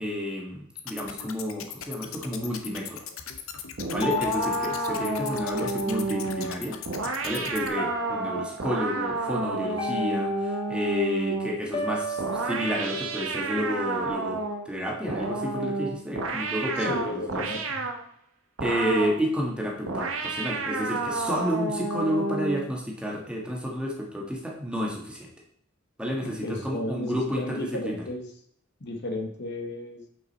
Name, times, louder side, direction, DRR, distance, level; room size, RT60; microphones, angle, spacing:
voice 1, 0.0-3.0 3.9-6.8 7.2-17.4 18.6-25.3 26.0-28.0, equal, 5° right, -1 dB, 1.5 m, -30 dB
sound 1, 0.8-7.7, left 8 dB, 85° left, 0.8 m, -40 dB
sound 2, 3.8-11.6 12.2-14.7 15.1-18.0 18.6-19.2 19.9-22.7, right 3 dB, 75° right, 1.1 m, -30 dB
sound 3, 4.0-6.4 7.8-8.8 9.8-11.1 11.7-14.1, left 3 dB, 25° left, 1.2 m, -35 dB
voice 2, 16.8-17.8 26.2-28.3 28.8-30.1, left 1 dB, 55° left, 4 dB, 1.2 m, -34 dB
8.6 x 5.3 x 4.2 m, 0.65 s
head